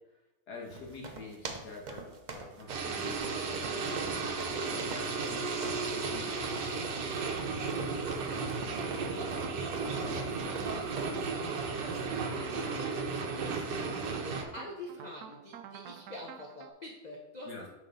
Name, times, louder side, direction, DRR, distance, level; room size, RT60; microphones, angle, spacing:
voice 1, 0.5-5.2 5.9-6.3 8.7-9.0 12.5-12.7 13.8-14.1 17.4-17.6, left 4 dB, 70° left, -2 dB, 2.1 m, -47 dB
sound 1, 0.7-11.3, right 4 dB, 55° right, 0.5 m, -45 dB
sound 2, 2.7-14.4, right 4 dB, 90° right, 1.6 m, -34 dB
voice 2, 4.5-8.2 9.0-10.4 10.7-12.3 12.8-13.8 14.2-17.7, left 1 dB, 35° left, -1 dB, 0.7 m, -48 dB
sound 3, 8.1-16.7, right 9 dB, 70° right, 1.1 m, -49 dB
6.3 x 4.5 x 5.2 m, 0.96 s
omnidirectional pair, 1.8 m